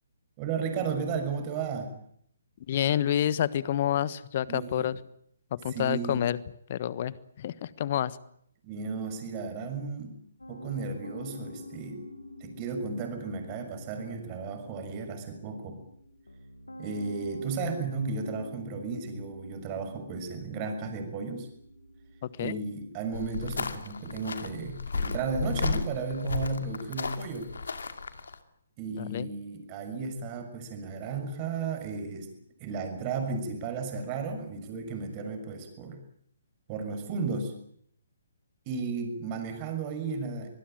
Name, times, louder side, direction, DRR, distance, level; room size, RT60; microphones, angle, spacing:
voice 1, 0.4-1.9 4.4-4.9 5.7-6.2 8.6-10.2 10.5-12.1 12.4-15.8 16.8-21.5 22.4-27.5 28.8-32.3 32.6-36.0 36.7-37.5 38.7-40.5, right 4 dB, 30° right, 6 dB, 6.5 m, -34 dB
voice 2, 2.7-4.9 5.5-6.4 6.7-8.2 22.4-22.6 28.9-29.3, left 10 dB, 45° left, 18 dB, 1.3 m, -28 dB
Piano, 10.4-27.5, left 1 dB, 85° left, 3.5 m, -48 dB
sound 1, 23.1-28.4, left 4 dB, 70° left, 2.5 m, -34 dB
25.0 x 20.5 x 9.1 m, 0.70 s
figure-of-eight pair, 135°, 0 cm